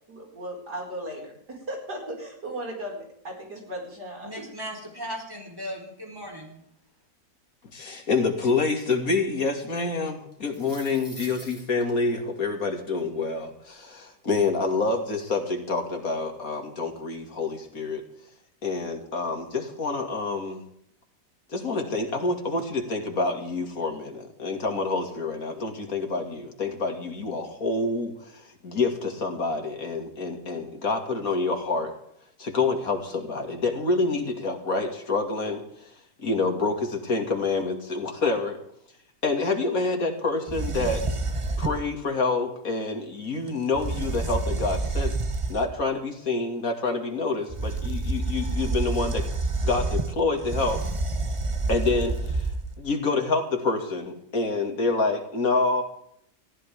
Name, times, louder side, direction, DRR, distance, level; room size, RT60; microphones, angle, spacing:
voice 1, 0.1-4.4, right 1 dB, 75° right, -1 dB, 5.8 m, -36 dB
voice 2, 4.2-6.6, equal, 10° right, 1 dB, 4.4 m, -37 dB
voice 3, 7.7-18.0 18.6-20.6 21.5-31.9 32.4-35.9 36.2-38.6 39.2-41.0 41.6-45.1 45.5-49.2 49.6-50.8 51.7-55.8, left 3 dB, 55° left, 4 dB, 2.7 m, -27 dB
sound 1, 10.3-11.9, left 1 dB, 10° left, 5.2 m, -46 dB
sound 2, 40.5-41.9 43.5-43.6 43.7-45.8 47.5-52.9, right 3 dB, 30° right, 0.6 m, -28 dB
20.0 x 15.5 x 3.6 m, 0.71 s
omnidirectional pair, 1.8 m